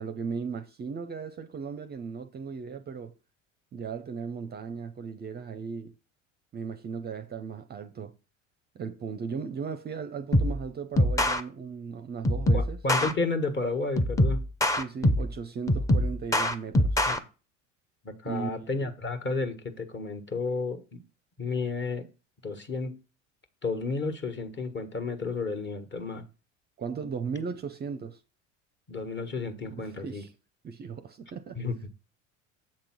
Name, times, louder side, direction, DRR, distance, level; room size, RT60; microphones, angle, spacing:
voice 1, 0.0-3.1 3.7-5.9 6.5-8.1 8.8-12.8 14.7-17.0 18.2-18.7 26.8-28.2 29.7-30.3 30.6-31.6, right 6 dB, 25° right, 0.6 m, -36 dB
sound 1, 10.3-10.6 11.0-11.4 12.2-13.1 14.0-15.3 15.7-17.2, left 1 dB, 10° left, 0.7 m, -24 dB
voice 2, 12.5-14.4 17.1-17.2 18.0-21.0 21.4-22.1 22.4-22.9 23.6-26.2 28.9-30.2 31.5-31.9, left 3 dB, 30° left, 1.5 m, -32 dB
7.6 x 3.7 x 6.1 m
hypercardioid pair, 75°, 38 cm